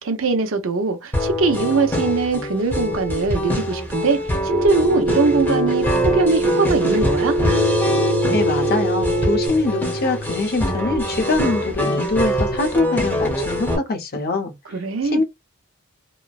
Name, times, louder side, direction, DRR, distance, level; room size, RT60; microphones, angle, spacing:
voice 1, 0.0-7.4 14.7-15.2, right 3 dB, 70° right, 0.7 m, -21 dB
sound 1, 1.1-13.8, left 1 dB, 10° left, 0.9 m, -24 dB
Telephone, 4.5-9.5, right 2 dB, 25° right, 0.3 m, -23 dB
voice 2, 8.3-14.5 15.0-15.2, left 3 dB, 50° left, 0.6 m, -23 dB
3.0 x 2.1 x 2.3 m
head